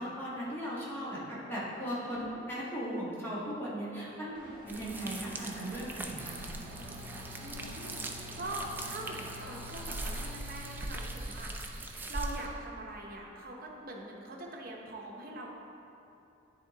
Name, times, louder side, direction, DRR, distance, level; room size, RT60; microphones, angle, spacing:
voice 1, 0.0-4.3 4.7-6.4, equal, 10° left, -9 dB, 1.5 m, -37 dB
voice 2, 4.2-4.6 7.4-11.6 12.0-15.5, right 2 dB, 50° right, -1 dB, 0.9 m, -43 dB
Engine, 4.3-10.2, right 1 dB, 25° right, 1.3 m, -48 dB
sound 1, 4.7-12.5, right 2 dB, 10° right, 0.3 m, -41 dB
Mechanical fan, 6.2-12.6, left 1 dB, 80° right, 0.6 m, -49 dB
9.9 x 3.7 x 4.0 m, 2.9 s
head